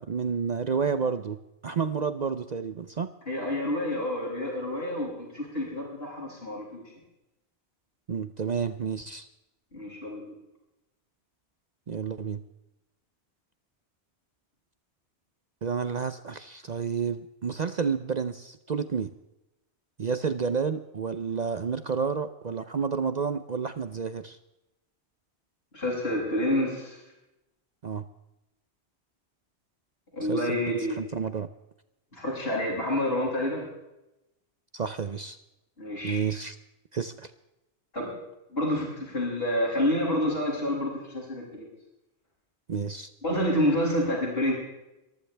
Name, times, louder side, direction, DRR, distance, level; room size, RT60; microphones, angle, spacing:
voice 1, 0.0-1.4 1.6-3.1 8.1-9.3 11.9-12.4 15.6-19.1 20.0-24.4 27.8-28.0 30.3-31.5 34.7-35.4 36.0-36.5 36.9-37.3 42.7-43.1, right 6 dB, 45° right, 11 dB, 0.7 m, -30 dB
voice 2, 3.3-6.8 9.7-10.2 25.7-27.0 30.1-31.0 32.1-33.7 35.8-36.2 37.9-38.1 38.5-41.7 43.2-44.5, left 1 dB, 60° left, -4 dB, 7.7 m, -28 dB
23.5 x 15.0 x 3.4 m, 0.92 s
omnidirectional pair, 1.1 m